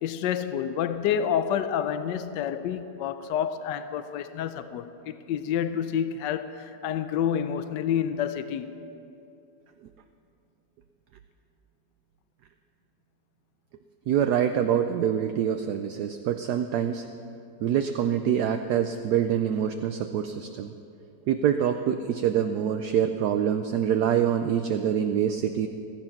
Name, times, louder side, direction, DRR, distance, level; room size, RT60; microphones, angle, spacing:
voice 1, 0.0-8.8, left 9 dB, 80° left, 1.2 m, -28 dB
voice 2, 14.1-17.1 17.6-20.7 21.3-25.7, right 9 dB, 70° right, 1.1 m, -25 dB
15.0 x 14.5 x 5.9 m
omnidirectional pair, 2.0 m